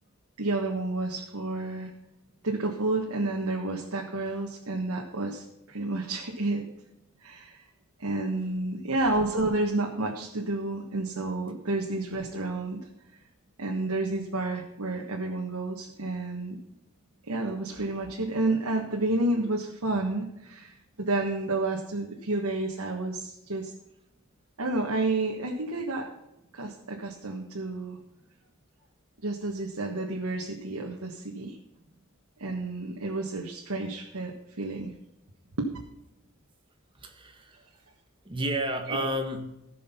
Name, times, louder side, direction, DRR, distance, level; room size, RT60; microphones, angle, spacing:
voice 1, 0.4-1.9 2.4-6.7 7.2-7.6 8.0-12.9 13.6-16.6 17.2-23.7 24.6-26.1 26.5-28.0 29.2-31.6 32.4-34.9 35.6-35.7 38.9-39.0, right 2 dB, 80° right, 0 dB, 1.5 m, -30 dB
voice 2, 37.0-37.7 38.2-39.5, right 1 dB, 25° right, 5 dB, 1.6 m, -31 dB
15.5 x 6.5 x 5.7 m, 0.89 s
head